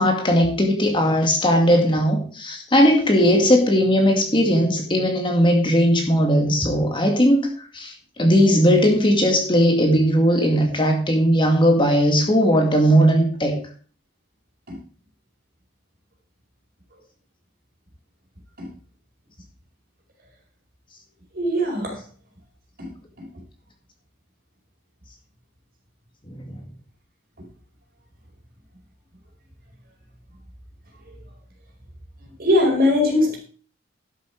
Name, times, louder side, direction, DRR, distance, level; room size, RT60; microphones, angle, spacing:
voice 1, 0.0-7.5 7.7-13.6 26.3-26.6, equal, 25° left, 2 dB, 2.0 m, -18 dB
voice 2, 21.3-22.0 22.8-22.9 27.4-27.5 32.4-33.4, left 1 dB, 45° right, 0 dB, 4.8 m, -20 dB
12.0 x 8.0 x 4.7 m, 0.41 s
head